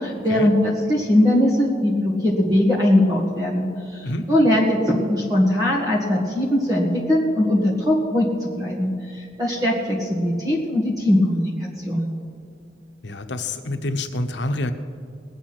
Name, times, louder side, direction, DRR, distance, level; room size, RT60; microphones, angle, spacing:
voice 1, 0.0-3.7 3.9-8.3 8.6-8.9 9.4-11.5 11.8-12.1, left 1 dB, 20° right, -3 dB, 1.8 m, -20 dB
voice 2, 13.0-14.7, left 2 dB, 80° left, 8 dB, 1.0 m, -27 dB
20.0 x 8.3 x 6.1 m, 2.2 s
head